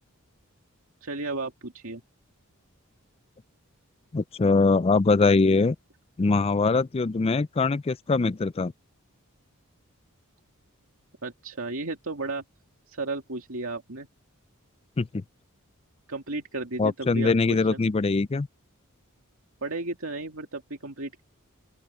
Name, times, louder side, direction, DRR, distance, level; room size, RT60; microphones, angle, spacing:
voice 1, 1.0-2.0 11.2-12.4 12.9-14.1 16.1-17.8 19.6-21.2, right 2 dB, 65° right, 2.6 m, -34 dB
voice 2, 4.1-5.8 6.2-8.7 15.0-15.1 16.8-18.5, left 3 dB, 25° left, 0.4 m, -22 dB
open air
head